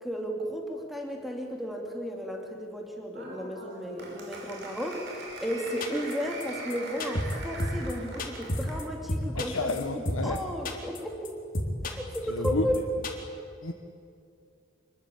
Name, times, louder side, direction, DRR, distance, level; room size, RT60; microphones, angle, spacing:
voice 1, 0.0-11.3 11.8-12.8, equal, ahead, 1 dB, 2.8 m, -34 dB
Applause, 3.1-8.9, right 2 dB, 55° right, 5.4 m, -42 dB
sound 1, 5.8-6.1 6.4-6.5 6.7-6.8 7.0-7.3 7.6-7.9 8.2-8.8 9.1-10.4 10.6-11.0 11.2-11.3 11.5-12.2 12.4-12.8 13.0-13.1, left 1 dB, 45° left, 3.9 m, -30 dB
voice 2, 9.3-10.4 12.4-12.7 13.6-13.7, left 3 dB, 75° left, 4 dB, 1.5 m, -30 dB
26.0 x 23.0 x 8.8 m, 2.4 s
head